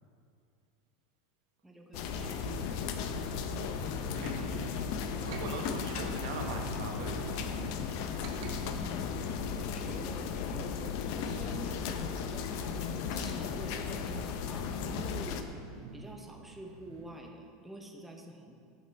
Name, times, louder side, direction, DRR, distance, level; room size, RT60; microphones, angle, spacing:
voice 1, 1.6-3.1 8.6-14.7 15.1-15.5 15.9-18.5, right 1 dB, 5° right, 2 dB, 0.7 m, -48 dB
sound 1, 1.9-15.4, left 6 dB, 55° left, 0.5 m, -35 dB
sound 2, 3.6-17.2, right 3 dB, 65° right, 0.7 m, -50 dB
voice 2, 3.7-4.8 5.1-7.4, right 3 dB, 85° right, 3 dB, 1.0 m, -41 dB
6.7 x 5.3 x 5.1 m, 2.3 s
supercardioid pair, 150°, 3 cm